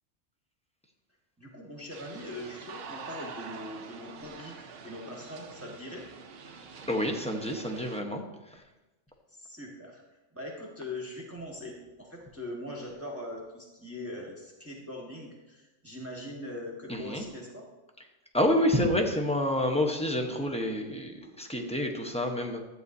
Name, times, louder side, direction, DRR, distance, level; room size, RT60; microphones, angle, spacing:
voice 1, 1.4-6.1 9.3-10.0 10.3-17.7, left 1 dB, 10° right, -2 dB, 1.4 m, -41 dB
sound 1, 1.9-8.0, right 5 dB, 60° right, 0.8 m, -45 dB
voice 2, 6.9-8.2 8.5-8.6 16.9-17.2 18.3-22.6, left 1 dB, 5° left, 2 dB, 0.8 m, -28 dB
12.5 x 9.2 x 2.7 m, 1.1 s
omnidirectional pair, 1.3 m